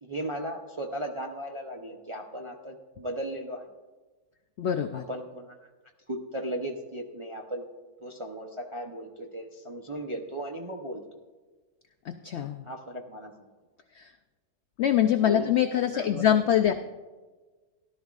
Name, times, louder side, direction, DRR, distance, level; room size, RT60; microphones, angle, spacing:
voice 1, 0.0-3.7 4.9-5.6 6.1-7.7 8.0-11.0 12.6-13.3 15.2-15.5 15.9-16.3, right 1 dB, 40° right, 1 dB, 0.4 m, -36 dB
voice 2, 4.6-5.0 12.1-12.7 13.9-14.1 14.8-16.7, left 10 dB, 80° left, 8 dB, 0.6 m, -24 dB
17.0 x 12.0 x 2.4 m, 1.3 s
omnidirectional pair, 1.7 m